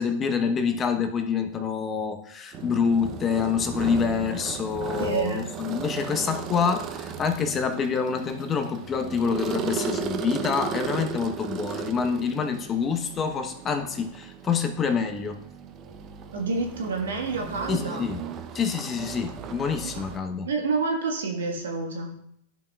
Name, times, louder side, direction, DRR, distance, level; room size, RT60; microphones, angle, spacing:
voice 1, 0.0-15.4 17.7-18.2 18.5-20.5, left 6 dB, 30° left, 7 dB, 0.9 m, -27 dB
sound 1, 2.5-20.2, right 6 dB, 40° right, 0.7 m, -36 dB
voice 2, 5.0-5.5 16.3-18.1 19.8-20.0 20.4-22.2, right 4 dB, 80° right, 2 dB, 1.5 m, -28 dB
10.5 x 5.7 x 2.4 m, 0.72 s
hypercardioid pair, 105°, 0 cm